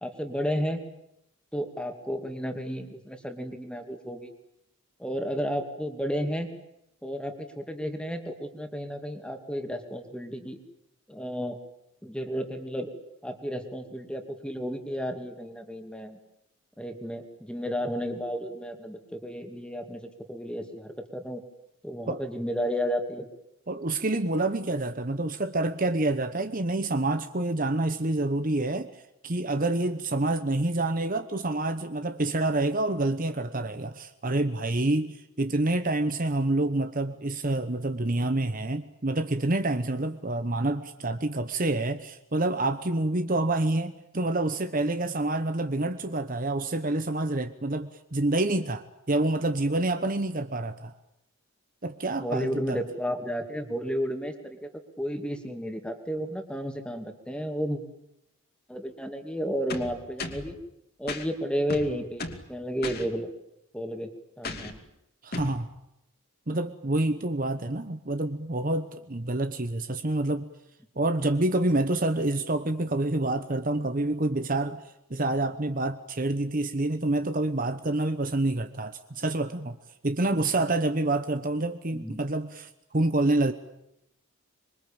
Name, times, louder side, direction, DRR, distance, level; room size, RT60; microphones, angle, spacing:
voice 1, 0.0-0.8 1.5-4.3 5.0-6.5 7.0-10.6 11.1-11.6 12.0-12.9 13.2-16.2 16.8-21.4 21.8-23.3 52.2-54.7 55.0-57.8 58.7-60.6 61.0-63.3 63.7-64.1 64.4-64.8 81.9-82.2, equal, 5° left, 5 dB, 2.6 m, -32 dB
voice 2, 23.7-50.9 51.8-52.8 65.2-65.7 66.5-70.5 71.0-74.8 75.1-79.8 80.0-83.5, right 2 dB, 40° right, 9 dB, 1.1 m, -27 dB
sound 1, 59.7-60.5 61.1-61.3 61.7-62.5 62.8-63.1 64.4-64.8 65.3-65.6, left 3 dB, 45° left, 2.7 m, -35 dB
26.0 x 23.5 x 8.9 m, 0.82 s
head